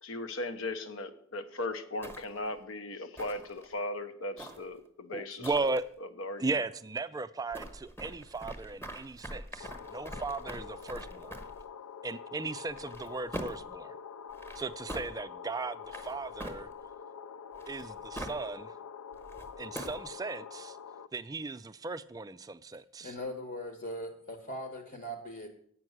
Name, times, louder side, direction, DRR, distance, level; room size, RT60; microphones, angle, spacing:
voice 1, 0.0-5.7 6.0-6.6, left 2 dB, 65° left, 0.9 m, -38 dB
sound 1, 2.0-2.5 3.2-3.7 4.4-4.9 5.4-5.8 7.5-11.6 12.7-13.7 14.3-15.1 15.8-16.9 17.5-18.5 19.1-20.1, right 1 dB, 10° left, 1.2 m, -44 dB
voice 2, 5.1-5.9 6.4-11.4 12.0-14.0 14.6-16.7 17.7-18.7 19.6-20.8 21.1-23.1, right 3 dB, 15° right, 0.3 m, -37 dB
sound 2, 9.6-21.1, left 7 dB, 90° left, 0.4 m, -46 dB
voice 3, 23.0-25.5, equal, 45° left, 1.2 m, -40 dB
8.5 x 6.0 x 7.8 m
head